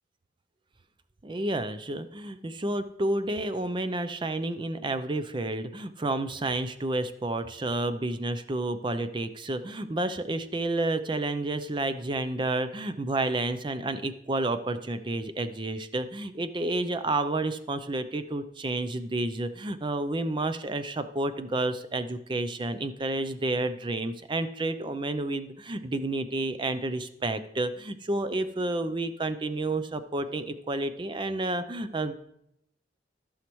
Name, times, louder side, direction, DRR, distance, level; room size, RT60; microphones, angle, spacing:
voice 1, 1.2-32.1, right 2 dB, 25° right, 11 dB, 0.5 m, -30 dB
15.0 x 6.4 x 3.1 m, 0.78 s
head